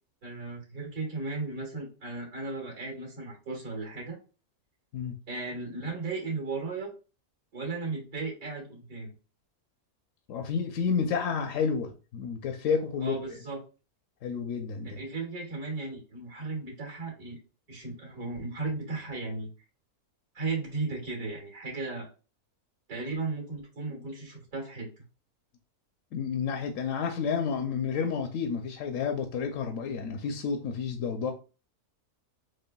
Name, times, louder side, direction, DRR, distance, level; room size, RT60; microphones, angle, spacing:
voice 1, 0.2-4.2 5.3-6.9 7.5-9.1 13.0-13.6 14.8-17.4 17.7-19.5 20.3-22.1 22.9-24.9, right 3 dB, 70° right, 2.2 m, -35 dB
voice 2, 10.3-13.4 14.2-15.0 26.1-31.3, left 6 dB, 70° left, 0.9 m, -30 dB
6.3 x 2.2 x 2.2 m
omnidirectional pair, 1.6 m